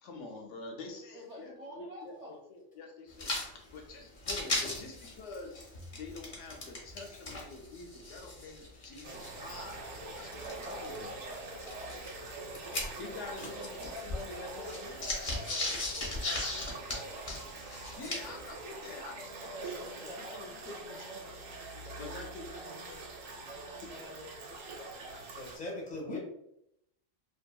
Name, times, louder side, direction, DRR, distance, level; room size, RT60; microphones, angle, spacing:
voice 1, 0.0-3.3 3.7-5.6 5.9-11.1 13.0-15.0 18.0-21.3 22.0-22.5 23.8-23.9 26.1-26.2, left 3 dB, 75° left, 2 dB, 0.9 m, -46 dB
voice 2, 1.1-2.4 10.6-13.2 13.7-17.3 19.4-21.4 21.7-22.3 22.6-25.0, equal, 55° right, -5 dB, 0.4 m, -48 dB
sound 1, 3.1-3.5 3.7-3.8 4.1-7.0 7.3-11.0 11.6-13.3 13.6-18.4, left 2 dB, 45° left, 0.7 m, -37 dB
sound 2, 9.0-25.6, right 3 dB, 90° right, 1.0 m, -44 dB
voice 3, 25.3-26.2, left 1 dB, 10° left, -3 dB, 0.4 m, -40 dB
2.7 x 2.5 x 2.2 m, 0.77 s
omnidirectional pair, 1.3 m